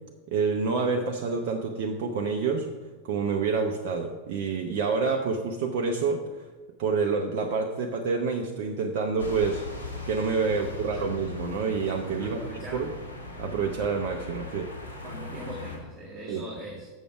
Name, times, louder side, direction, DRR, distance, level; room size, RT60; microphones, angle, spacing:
voice 1, 0.3-2.7 3.0-6.5 6.8-12.4 12.7-12.9 13.4-14.7 16.3-16.4, right 4 dB, 45° right, 2 dB, 0.7 m, -28 dB
sound 1, 9.2-15.8, left 2 dB, 75° left, 1.6 m, -39 dB
voice 2, 10.6-11.1 12.2-12.9 15.0-16.9, right 1 dB, 15° right, -6 dB, 1.9 m, -41 dB
7.2 x 6.9 x 4.8 m, 1.3 s
figure-of-eight pair, 90°, 0 cm